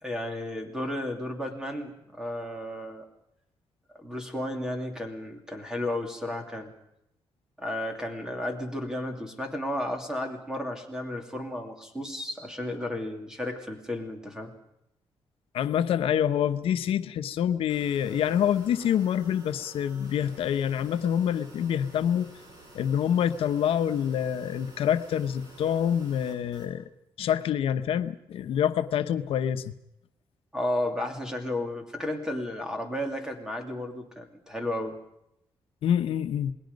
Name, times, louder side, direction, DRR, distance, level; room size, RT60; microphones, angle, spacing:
voice 1, 0.0-3.0 3.9-6.7 7.6-14.5 30.5-35.0, left 1 dB, 5° right, 4 dB, 2.8 m, -33 dB
voice 2, 15.5-22.3 22.7-26.9 27.2-29.8 35.8-36.5, left 9 dB, 85° left, 9 dB, 0.9 m, -26 dB
sound 1, 17.7-26.7, right 2 dB, 45° right, 5.7 m, -51 dB
28.5 x 20.0 x 5.3 m, 0.79 s
wide cardioid pair, 170°, 9 cm